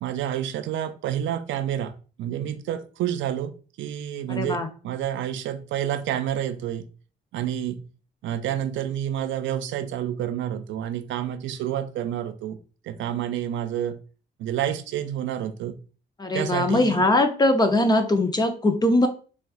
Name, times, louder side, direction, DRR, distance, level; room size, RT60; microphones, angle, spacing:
voice 1, 0.0-6.9 7.3-7.8 8.2-12.6 12.8-14.0 14.4-15.7 16.3-17.1, right 10 dB, 70° right, 0.4 m, -29 dB
voice 2, 4.3-4.7 16.2-19.1, left 1 dB, 20° left, 0.5 m, -21 dB
4.2 x 2.3 x 2.3 m
cardioid pair, 90°, 20 cm